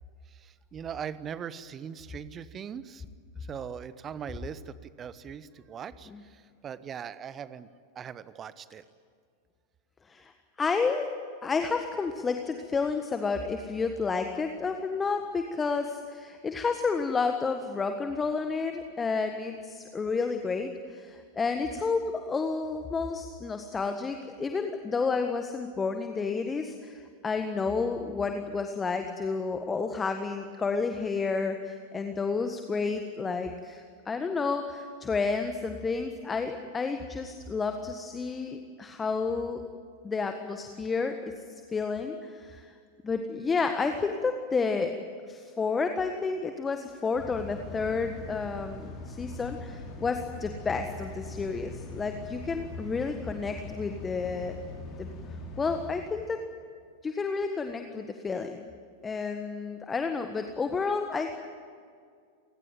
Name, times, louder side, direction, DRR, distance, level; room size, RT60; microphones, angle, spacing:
voice 1, 0.3-3.0 3.4-7.7 7.9-8.8, right 8 dB, 25° right, 15 dB, 1.1 m, -40 dB
voice 2, 10.6-11.1 11.4-39.6 40.0-41.3 41.7-42.7 43.0-44.9 45.3-54.6 55.0-55.1 55.6-56.4 57.0-58.7 59.0-61.4, left 4 dB, 15° left, 6 dB, 1.6 m, -30 dB
sound 1, 47.1-55.9, left 2 dB, 35° left, 4.7 m, -41 dB
29.0 x 18.0 x 9.1 m, 2.2 s
figure-of-eight pair, 90°, 0 cm